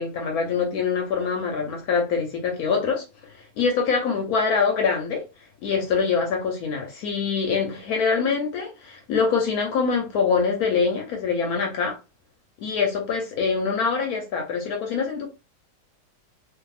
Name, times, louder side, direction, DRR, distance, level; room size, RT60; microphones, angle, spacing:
voice 1, 0.0-3.0 3.6-5.2 5.6-11.9 12.6-15.3, left 5 dB, 75° left, 1.0 m, -24 dB
2.6 x 2.6 x 2.3 m
omnidirectional pair, 1.7 m